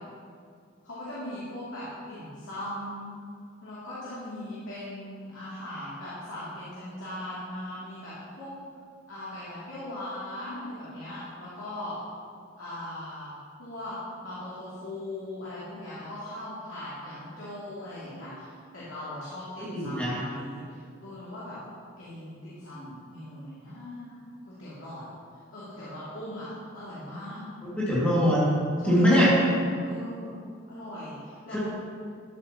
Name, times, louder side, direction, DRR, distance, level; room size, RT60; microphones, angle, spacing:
voice 1, 0.8-3.1 3.6-8.5 9.1-12.0 12.6-13.3 13.6-14.0 14.2-21.6 22.0-25.0 25.5-27.4 28.8-30.4 30.7-31.7, left 1 dB, 85° left, -11 dB, 2.6 m, -39 dB
voice 2, 19.6-20.2 27.8-28.4 28.8-29.3 31.5-31.7, equal, 5° left, -9 dB, 2.0 m, -22 dB
12.5 x 8.7 x 2.9 m, 2.2 s
head